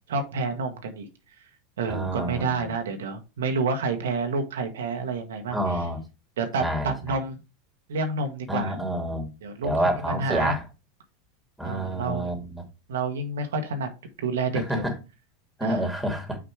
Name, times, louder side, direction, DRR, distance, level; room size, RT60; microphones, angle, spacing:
voice 1, 0.1-1.1 1.8-5.8 6.4-7.4 7.9-8.8 9.4-10.6 11.6-12.3 12.9-13.9 14.2-14.8 15.6-15.8, right 4 dB, 75° right, 1.2 m, -29 dB
voice 2, 1.9-2.7 5.5-6.0 6.6-7.2 8.5-9.3 9.6-10.6 11.6-12.6 14.5-14.9 15.6-16.4, right 1 dB, 5° right, 2.6 m, -28 dB
6.0 x 5.0 x 4.7 m
hypercardioid pair, 90°, 0 cm